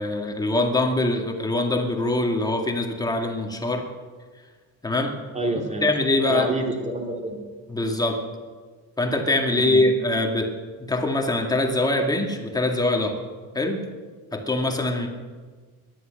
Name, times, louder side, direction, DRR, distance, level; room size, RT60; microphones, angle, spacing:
voice 1, 0.0-3.9 4.8-5.1 5.8-6.5 7.7-8.3 9.0-10.5 10.9-13.2 13.5-13.8 14.3-15.1, left 2 dB, 10° left, 3 dB, 2.2 m, -23 dB
voice 2, 5.3-5.8 6.3-7.4 9.5-9.8, right 1 dB, 20° right, 2 dB, 2.8 m, -28 dB
19.0 x 11.5 x 6.6 m, 1.4 s
cardioid pair, 140°, 35 cm